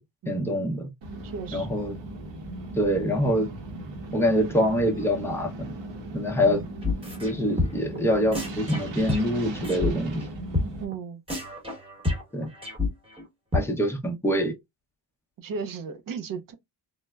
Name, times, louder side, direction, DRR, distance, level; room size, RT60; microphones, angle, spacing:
voice 1, 0.3-0.9 1.5-2.0 2.8-3.5 4.1-5.7 6.1-6.6 7.2-10.2 12.3-12.5 13.5-14.5, equal, 5° left, 0.6 m, -25 dB
sound 1, 1.0-10.8, right 2 dB, 80° right, 0.9 m, -38 dB
voice 2, 1.2-1.7 6.4-6.7 10.8-11.2 15.4-16.5, right 5 dB, 50° right, 0.5 m, -35 dB
sound 2, 6.8-7.3 7.6-8.0 8.3-9.9 10.2-10.3 10.5-10.7 10.9-11.0 11.3-13.2 13.5-13.6, left 2 dB, 15° right, 1.0 m, -28 dB
3.2 x 2.0 x 2.2 m
wide cardioid pair, 125°, 43 cm